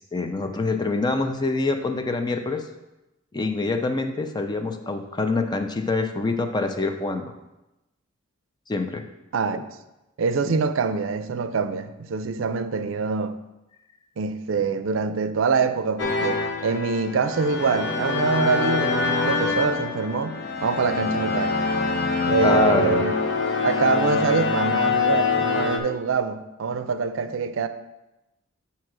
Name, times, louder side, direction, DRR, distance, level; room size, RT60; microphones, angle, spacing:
voice 1, 0.0-2.6 3.3-7.3 8.7-9.1 22.4-23.0, left 2 dB, 20° left, 6 dB, 0.5 m, -25 dB
voice 2, 9.3-9.6 10.2-13.4 14.2-20.3 20.6-21.5 22.3-23.1 23.6-27.7, right 5 dB, 75° right, 10 dB, 0.4 m, -25 dB
sound 1, 16.0-25.8, left 4 dB, 60° left, 0.8 m, -24 dB
7.3 x 2.8 x 6.0 m, 0.97 s
head